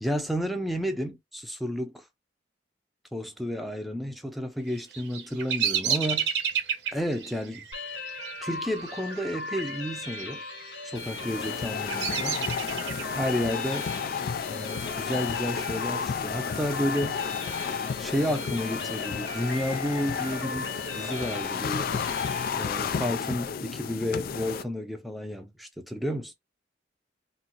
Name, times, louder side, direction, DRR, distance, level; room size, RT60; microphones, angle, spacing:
voice 1, 0.0-2.0 3.1-6.3 6.9-7.6 8.4-10.4 10.8-12.4 13.2-13.9 14.5-17.2 18.0-20.7 20.9-21.9 22.6-26.3, equal, ahead, 0.6 m, -31 dB
Bird vocalization bird call bird song, 4.7-9.8 10.0-10.6 11.2-13.2, right 8 dB, 75° right, 0.7 m, -31 dB
sound 1, 7.7-22.5, left 2 dB, 75° left, 1.3 m, -38 dB
sound 2, 10.9-24.6, left 6 dB, 55° left, 0.3 m, -32 dB
4.0 x 2.0 x 2.8 m
head